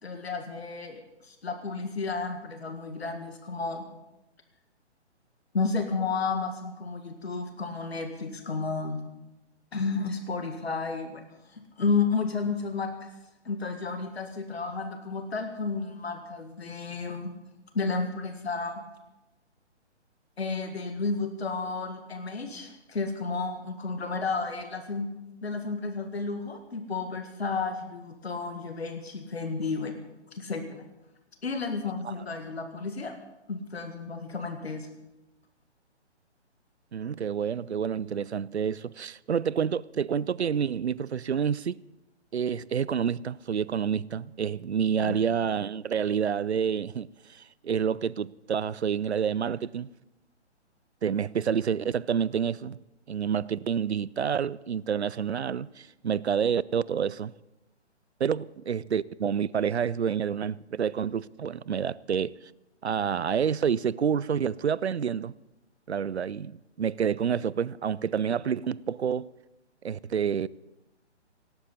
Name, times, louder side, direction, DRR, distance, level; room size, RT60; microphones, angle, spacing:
voice 1, 0.0-3.9 5.5-9.0 9.7-11.2 11.5-13.1 13.5-17.3 17.7-18.8 20.4-25.1 25.4-30.0 30.3-30.9 31.4-33.2 33.5-34.9 45.0-45.2, left 4 dB, 60° left, 1.8 m, -32 dB
voice 2, 36.9-41.8 42.3-49.9 51.0-52.8 53.1-57.3 58.2-62.3 62.8-65.3 65.9-69.3 69.8-70.5, right 7 dB, 65° right, 0.5 m, -28 dB
18.5 x 17.0 x 4.1 m
figure-of-eight pair, 135°, 35 cm